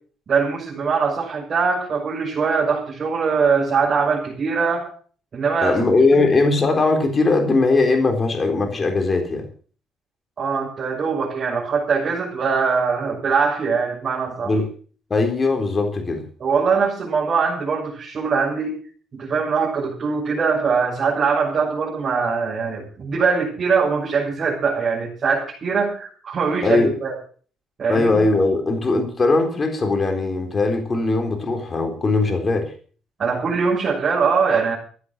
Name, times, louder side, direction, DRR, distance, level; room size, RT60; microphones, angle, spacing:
voice 1, 0.3-4.9 5.3-5.8 6.2-6.3 10.4-14.5 16.4-18.8 19.1-27.1 27.8-28.3 33.2-34.8, right 5 dB, 40° right, -4 dB, 6.8 m, -22 dB
voice 2, 5.6-9.5 14.4-14.7 15.1-16.2 26.6-26.9 27.9-32.7, left 3 dB, 30° left, 4 dB, 3.9 m, -19 dB
15.0 x 10.0 x 7.3 m, 0.43 s
cardioid pair, 115°, 0 cm